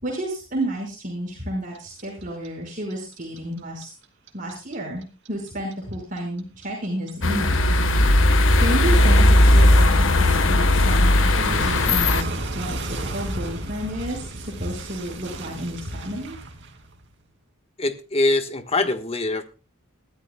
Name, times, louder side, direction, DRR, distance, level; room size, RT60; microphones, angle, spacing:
voice 1, 0.0-3.9 4.3-7.7 8.1-16.4, equal, 40° right, -2 dB, 5.5 m, -31 dB
Clock, 1.7-4.7 5.0-8.0 8.3-17.1, right 2 dB, 60° right, 2.6 m, -33 dB
sound 1, 7.2-12.2, left 1 dB, 70° left, 1.4 m, -17 dB
voice 2, 17.8-19.4, left 2 dB, 30° left, 7 dB, 1.5 m, -23 dB
21.5 x 14.0 x 2.3 m, 0.34 s
head